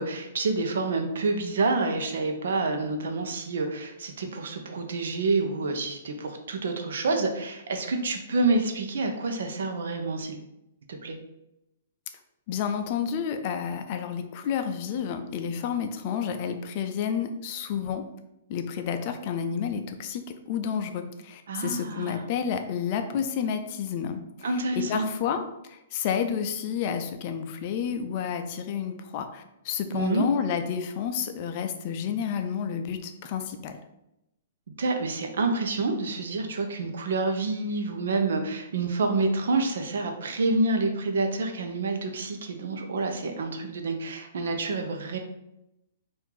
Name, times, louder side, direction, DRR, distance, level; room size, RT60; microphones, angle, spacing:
voice 1, 0.0-10.4 10.9-11.2 21.5-22.2 24.4-25.1 29.9-30.3 34.8-45.2, right 3 dB, 75° right, 4 dB, 0.8 m, -28 dB
voice 2, 12.5-18.0 18.5-33.7, left 7 dB, 40° left, 7 dB, 0.5 m, -30 dB
4.5 x 2.6 x 3.8 m, 0.87 s
hypercardioid pair, 150°, 0 cm